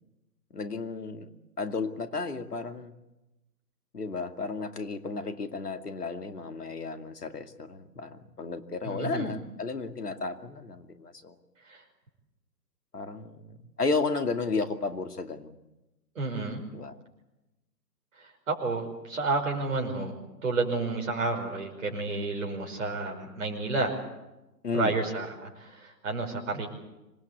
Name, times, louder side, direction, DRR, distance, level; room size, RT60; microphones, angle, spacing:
voice 1, 0.5-1.3 1.6-2.9 3.9-11.4 12.9-15.6 16.7-17.0 24.6-25.0, left 4 dB, 65° left, 8 dB, 2.5 m, -33 dB
voice 2, 8.8-9.3 11.6-11.8 16.2-16.6 18.2-20.1 20.4-23.9 24.7-26.7, right 3 dB, 50° right, 2 dB, 5.4 m, -31 dB
26.0 x 19.5 x 8.3 m, 0.99 s
figure-of-eight pair, 135°, 49 cm